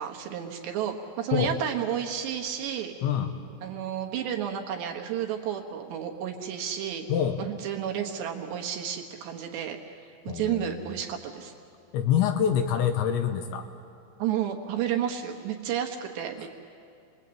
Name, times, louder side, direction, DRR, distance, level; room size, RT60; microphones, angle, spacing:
voice 1, 0.0-2.9 3.6-7.1 7.4-9.8 10.0-11.5 14.2-16.5, right 9 dB, 70° right, 2 dB, 3.1 m, -31 dB
voice 2, 7.1-7.4 10.3-10.7 11.9-13.7, left 9 dB, 75° left, 6 dB, 2.9 m, -25 dB
28.5 x 21.0 x 8.7 m, 2.6 s
omnidirectional pair, 5.9 m